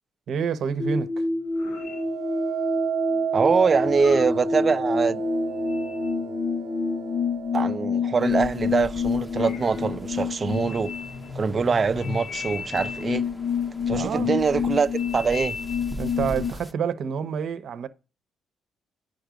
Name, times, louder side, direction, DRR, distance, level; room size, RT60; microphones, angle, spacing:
voice 1, 0.3-1.3 13.9-14.3 16.0-17.9, right 7 dB, 65° right, 0.9 m, -28 dB
sound 1, 0.8-16.5, left 4 dB, 70° left, 0.9 m, -28 dB
sound 2, 1.6-10.8 11.3-11.8, right 10 dB, 85° right, 0.5 m, -34 dB
voice 2, 3.3-5.2 7.5-10.9 11.3-13.2 13.9-15.6, right 5 dB, 35° right, 0.6 m, -23 dB
sound 3, 8.2-16.7, equal, 10° left, 0.9 m, -42 dB
9.4 x 5.3 x 5.1 m
cardioid pair, 90°, 0 cm